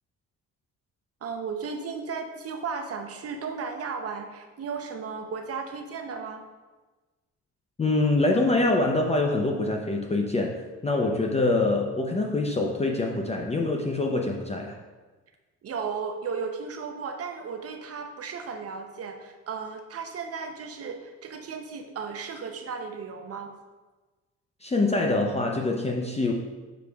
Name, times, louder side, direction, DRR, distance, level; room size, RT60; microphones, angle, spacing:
voice 1, 1.2-6.4 15.6-23.5, right 5 dB, 50° right, 5 dB, 0.7 m, -35 dB
voice 2, 7.8-14.8 24.6-26.3, left 2 dB, 20° left, 1 dB, 0.6 m, -25 dB
7.0 x 6.0 x 2.3 m, 1.3 s
cardioid pair, 90°, 30 cm